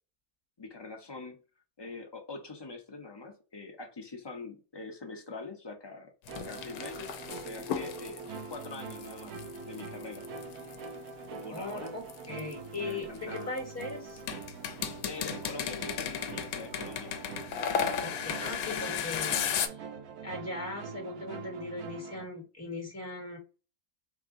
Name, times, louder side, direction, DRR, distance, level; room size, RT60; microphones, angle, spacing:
voice 1, 0.6-1.4 1.8-6.1 6.4-9.3 9.6-10.2 11.3-11.9 12.8-13.6 15.0-17.1, left 3 dB, 35° left, 4 dB, 0.4 m, -44 dB
sound 1, 6.3-10.8 11.6-13.8 14.2-19.7, left 8 dB, 75° left, 1.0 m, -35 dB
sound 2, 6.3-22.2, right 4 dB, 80° right, 1.2 m, -44 dB
voice 2, 11.5-14.2 18.0-19.8 20.2-23.4, left 2 dB, 10° left, 0 dB, 1.4 m, -39 dB
4.1 x 2.5 x 3.6 m, 0.34 s
omnidirectional pair, 1.6 m